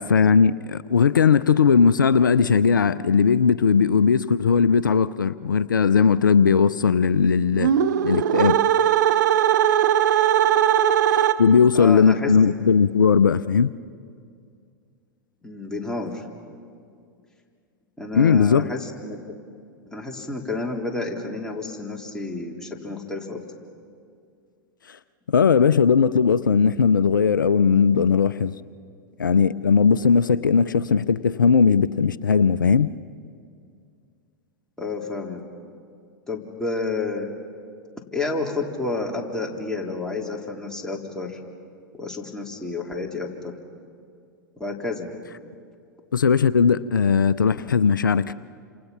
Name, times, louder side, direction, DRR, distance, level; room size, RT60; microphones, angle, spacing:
voice 1, 0.0-7.7 8.0-8.6 11.1-13.7 18.1-18.7 24.9-25.0 25.3-28.5 29.2-32.9 46.1-48.3, left 6 dB, 80° left, 15 dB, 0.5 m, -18 dB
sound 1, 7.5-11.7, right 10 dB, 65° right, 0.9 m, -19 dB
voice 2, 11.7-12.4 15.4-16.3 18.0-19.2 19.9-23.4 34.8-35.4 36.3-37.3 38.1-41.4 41.9-43.5 44.6-45.1, left 3 dB, 5° left, -1 dB, 3.8 m, -30 dB
29.0 x 27.0 x 5.9 m, 2.3 s
figure-of-eight pair, 95°, 10 cm